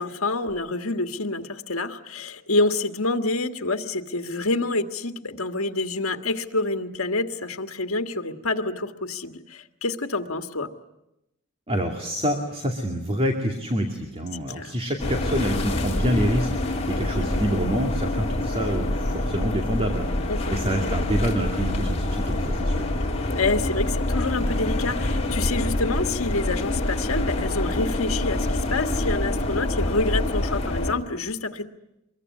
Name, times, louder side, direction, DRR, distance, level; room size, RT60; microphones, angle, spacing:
voice 1, 0.0-10.7 14.6-14.7 17.0-17.3 20.3-20.5 23.3-31.6, left 2 dB, 75° left, 7 dB, 1.7 m, -27 dB
voice 2, 11.7-22.9, equal, 30° right, 3 dB, 2.4 m, -27 dB
sound 1, 15.0-30.9, left 1 dB, 30° left, 3.3 m, -26 dB
25.0 x 22.5 x 9.6 m, 0.88 s
head